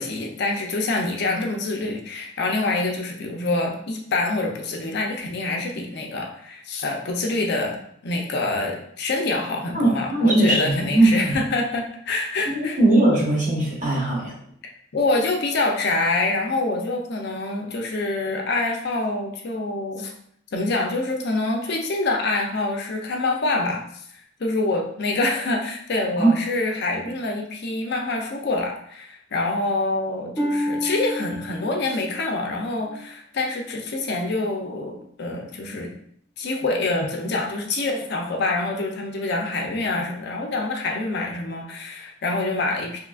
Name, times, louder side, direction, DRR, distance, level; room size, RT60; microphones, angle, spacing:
voice 1, 0.0-7.8 8.0-12.8 14.9-20.1 20.5-23.8 24.4-35.9 36.4-43.0, left 2 dB, 60° left, 1 dB, 0.5 m, -26 dB
voice 2, 9.7-11.4 12.5-14.3 26.2-26.3, right 1 dB, 40° right, -4 dB, 1.1 m, -19 dB
Harp, 30.4-34.1 34.7-35.1 35.7-35.8, equal, 15° left, 0.9 m, -31 dB
3.6 x 2.9 x 2.4 m, 0.68 s
head